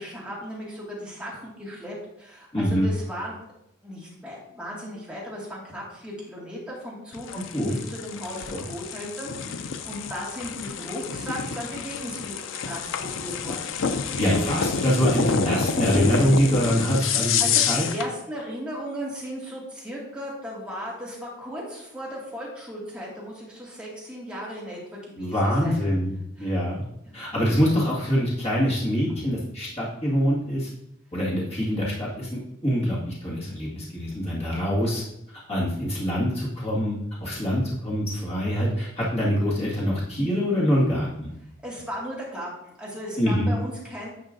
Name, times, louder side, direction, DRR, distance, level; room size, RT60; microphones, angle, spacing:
voice 1, 0.0-3.4 3.8-13.7 14.3-14.5 17.4-25.8 26.4-26.5 27.1-27.2 29.1-29.2 41.6-44.1, equal, 5° right, -6 dB, 2.1 m, -36 dB
voice 2, 2.5-2.9 7.3-7.7 8.5-8.6 14.2-17.9 25.2-26.1 26.4-26.8 27.1-30.7 31.1-35.0 35.5-41.3 43.2-43.5, equal, 30° left, -6 dB, 2.0 m, -24 dB
sound 1, 7.1-18.1, left 6 dB, 70° left, 0.5 m, -28 dB
9.9 x 5.5 x 2.7 m, 0.80 s
head